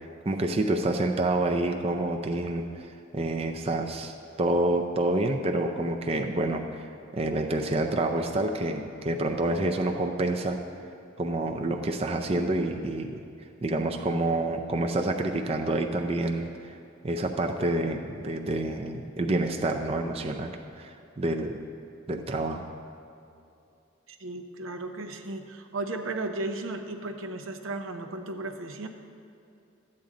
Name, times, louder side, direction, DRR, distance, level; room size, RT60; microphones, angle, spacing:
voice 1, 0.3-6.6 7.1-10.6 11.2-13.1 13.6-16.5 17.0-21.6 22.1-22.6, right 2 dB, 30° right, 3 dB, 0.5 m, -28 dB
voice 2, 24.2-28.9, right 2 dB, 85° right, 4 dB, 0.8 m, -35 dB
12.5 x 8.6 x 3.8 m, 2.6 s
head